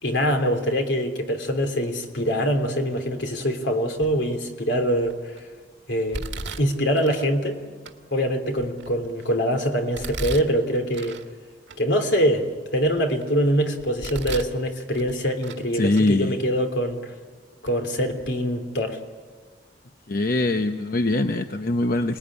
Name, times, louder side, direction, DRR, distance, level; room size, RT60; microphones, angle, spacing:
voice 1, 0.0-5.3 5.9-6.3 6.6-7.6 8.1-11.2 11.8-17.1 17.6-19.0, equal, 80° left, 5 dB, 3.2 m, -24 dB
Domestic sounds home sounds, 4.0-4.4 5.0-5.4 6.1-7.3 7.9-8.0 8.5-9.3 9.9-11.3 11.7-11.8 12.4-13.3 13.8-14.6 14.9-15.7 15.9-16.1 16.9-17.0 17.6-17.8 18.1-18.3, right 2 dB, 85° right, 1.8 m, -36 dB
voice 2, 15.7-16.4 20.1-22.2, left 2 dB, 55° left, 7 dB, 0.8 m, -23 dB
28.0 x 20.0 x 9.9 m, 1.5 s
head